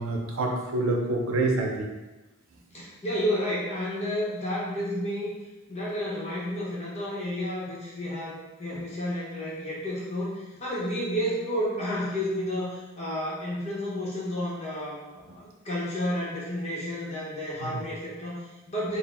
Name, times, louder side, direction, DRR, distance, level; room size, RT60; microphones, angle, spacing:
voice 1, 0.0-1.9 17.6-17.8, right 2 dB, 70° right, 1 dB, 0.6 m, -27 dB
voice 2, 2.7-5.3 5.7-19.0, equal, 30° left, -7 dB, 0.9 m, -31 dB
4.1 x 2.1 x 3.5 m, 1.1 s
head